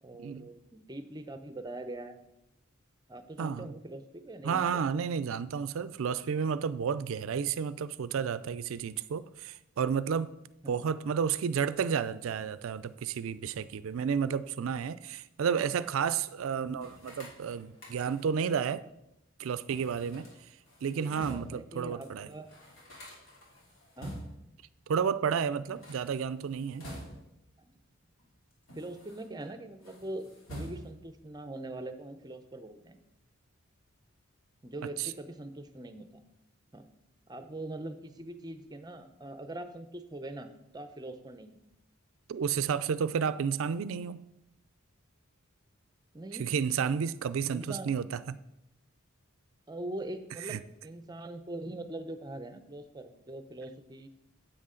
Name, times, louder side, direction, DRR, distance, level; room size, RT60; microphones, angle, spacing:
voice 1, 0.0-2.2 3.1-4.8 10.6-10.9 16.5-16.9 21.0-22.5 24.0-24.2 25.7-25.8 27.6-27.7 28.7-33.0 34.6-36.2 36.7-36.9 37.3-41.6 46.1-46.5 47.5-47.9 49.7-54.1, right 1 dB, 20° right, 10 dB, 0.6 m, -42 dB
voice 2, 3.4-3.7 4.4-10.3 10.7-18.8 19.4-20.3 20.8-22.3 24.9-26.9 35.0-35.1 42.3-44.2 46.4-48.4 50.5-50.6, right 7 dB, 70° right, 16 dB, 0.4 m, -31 dB
sound 1, 16.8-18.4 19.7-21.6 22.0-22.1 22.3-24.5 25.6-27.5 28.2-29.5 29.8-31.1, equal, 70° left, 2.9 m, -47 dB
9.7 x 8.1 x 3.8 m, 0.84 s
head